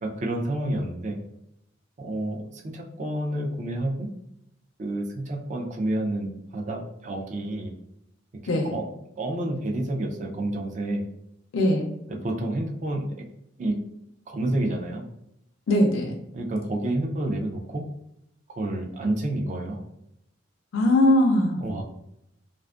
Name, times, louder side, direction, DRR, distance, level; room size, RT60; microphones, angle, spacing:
voice 1, 0.0-1.2 2.0-4.1 4.8-7.7 8.6-8.8 9.2-11.0 12.1-13.2 13.6-13.8 14.3-15.1 16.3-17.8 18.5-19.8 21.6-21.8, right 1 dB, 40° right, 1 dB, 0.4 m, -29 dB
voice 2, 8.5-8.8 11.5-11.9 15.7-16.2 20.7-21.6, left 1 dB, 80° left, 1 dB, 0.4 m, -20 dB
2.5 x 2.3 x 2.3 m, 0.80 s
head